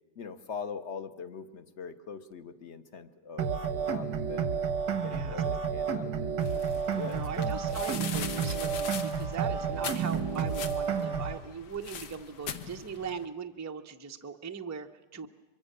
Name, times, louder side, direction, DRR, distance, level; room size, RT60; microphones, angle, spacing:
voice 1, 0.2-3.5 3.8-6.4 6.9-7.7, left 5 dB, 45° left, 10 dB, 1.2 m, -42 dB
sound 1, 3.4-11.4, right 6 dB, 80° right, 1.8 m, -31 dB
voice 2, 5.1-5.4 7.0-15.3, right 6 dB, 20° right, 6 dB, 0.5 m, -40 dB
sound 2, 6.4-13.3, left 7 dB, 80° left, 1.7 m, -42 dB
24.5 x 23.5 x 6.7 m, 1.1 s
omnidirectional pair, 1.8 m